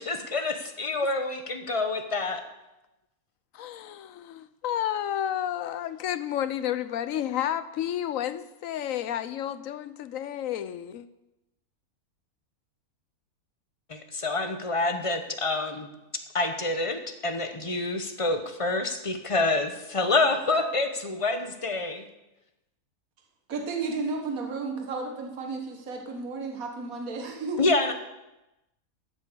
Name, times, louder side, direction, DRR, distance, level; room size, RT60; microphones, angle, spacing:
voice 1, 0.0-2.4 13.9-15.9 16.3-22.0 27.6-27.9, left 2 dB, 25° left, 7 dB, 1.0 m, -27 dB
voice 2, 3.5-11.1, left 11 dB, 70° left, 14 dB, 1.0 m, -31 dB
voice 3, 23.5-27.6, right 4 dB, 70° right, 3 dB, 1.9 m, -33 dB
13.5 x 8.4 x 6.9 m, 0.96 s
omnidirectional pair, 1.5 m